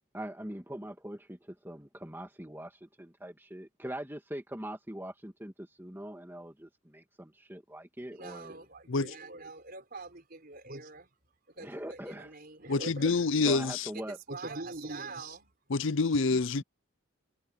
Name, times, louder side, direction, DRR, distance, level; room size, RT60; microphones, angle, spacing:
voice 1, 0.1-8.5 11.6-12.3 13.4-14.2, right 1 dB, 10° right, 2.2 m, -42 dB
voice 2, 8.1-11.1 11.6-13.3 13.9-15.5, right 2 dB, 45° right, 4.8 m, -43 dB
voice 3, 12.7-13.8 15.7-16.6, left 4 dB, 65° left, 0.6 m, -27 dB
head